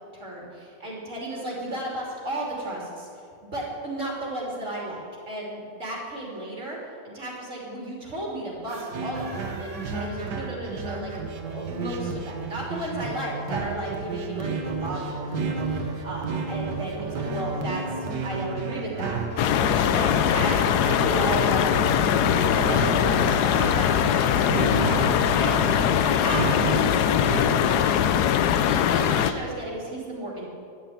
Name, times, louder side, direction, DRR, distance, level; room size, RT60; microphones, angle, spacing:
voice 1, 0.1-3.1 3.5-6.8 7.0-11.1 11.4-19.2 19.6-20.6 20.9-21.7 22.3-25.6 26.1-27.9 28.5-30.5, right 1 dB, 45° right, -4 dB, 3.3 m, -34 dB
sound 1, 8.6-10.9, right 2 dB, 20° right, 1.3 m, -45 dB
sound 2, 8.9-27.4, right 4 dB, 70° right, 1.8 m, -32 dB
sound 3, 19.4-29.3, left 9 dB, 70° left, 1.2 m, -21 dB
11.0 x 10.0 x 9.2 m, 2.4 s
omnidirectional pair, 1.9 m